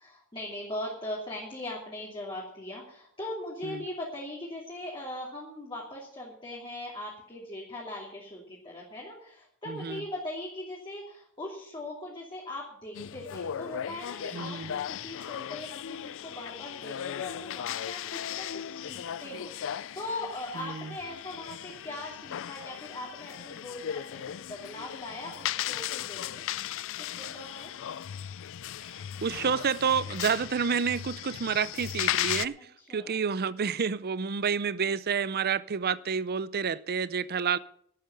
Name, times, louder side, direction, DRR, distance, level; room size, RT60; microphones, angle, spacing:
voice 1, 0.0-26.4 27.1-27.7 32.8-33.1, left 1 dB, 25° left, 2.8 m, -40 dB
voice 2, 9.7-10.0 14.3-14.7 20.5-20.9 29.2-32.6 32.9-37.6, right 6 dB, 45° right, 0.6 m, -29 dB
sound 1, 12.9-32.5, left 10 dB, 60° left, 0.4 m, -36 dB
12.0 x 8.6 x 7.7 m
head